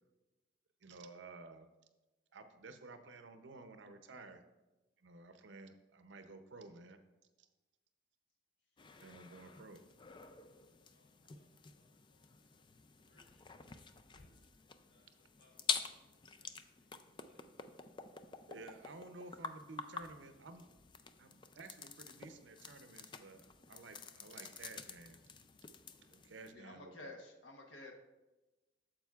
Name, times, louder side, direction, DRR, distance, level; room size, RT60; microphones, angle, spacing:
voice 1, 0.8-1.7 2.3-4.4 5.0-7.0 7.4-7.5 9.0-9.8 18.5-20.7 21.2-25.2 26.1-27.0, right 3 dB, 80° right, 8 dB, 0.6 m, -53 dB
voice 2, 8.6-8.9 10.1-12.3 13.0-14.5 14.9-17.5, left 2 dB, 65° left, -2 dB, 1.6 m, -75 dB
sound 1, 8.8-26.5, left 5 dB, 25° left, 0.3 m, -47 dB
voice 3, 26.5-27.9, left 2 dB, 85° left, 1 dB, 1.0 m, -51 dB
8.9 x 7.4 x 2.4 m, 1.1 s
head